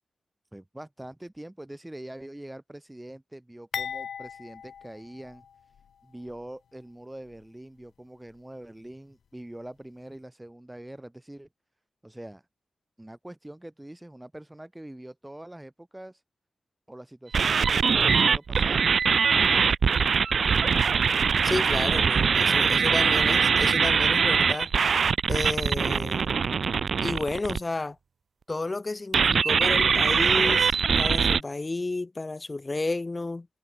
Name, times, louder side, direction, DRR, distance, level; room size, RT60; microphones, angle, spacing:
voice 1, 0.5-5.5 6.0-11.5 12.0-12.4 13.0-16.2 16.9-18.9 19.4-19.9, right 1 dB, 10° right, 2.8 m, -43 dB
sound 1, 3.7-5.9 6.2-6.4 7.3-7.4, left 7 dB, 80° left, 0.9 m, -38 dB
sound 2, 17.3-27.6 29.1-31.4, right 6 dB, 50° right, 1.1 m, -22 dB
voice 2, 21.4-24.7 25.3-26.3 27.0-28.0 28.5-33.5, left 2 dB, 20° left, 2.9 m, -32 dB
wide cardioid pair, 180°, 0 cm